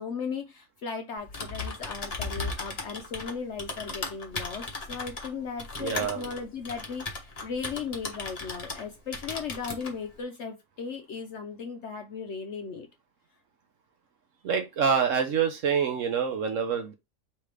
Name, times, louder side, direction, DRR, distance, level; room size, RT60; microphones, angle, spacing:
voice 1, 0.0-12.9, left 5 dB, 60° left, 0.8 m, -37 dB
Typing, 1.2-8.9 9.1-9.9, left 3 dB, 30° left, 0.8 m, -36 dB
voice 2, 5.8-6.3 14.4-16.9, right 6 dB, 60° right, 1.0 m, -26 dB
3.3 x 3.3 x 4.8 m
omnidirectional pair, 1.7 m